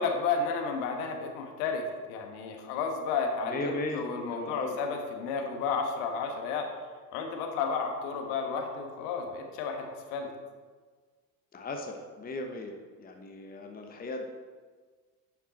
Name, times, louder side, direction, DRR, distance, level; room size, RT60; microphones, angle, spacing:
voice 1, 0.0-6.7 7.1-10.3, left 5 dB, 65° left, 3 dB, 1.5 m, -32 dB
voice 2, 3.4-4.8 5.2-5.3 11.5-14.3, left 2 dB, 20° left, 3 dB, 1.0 m, -37 dB
10.5 x 5.9 x 4.2 m, 1.5 s
hypercardioid pair, 70°, 47 cm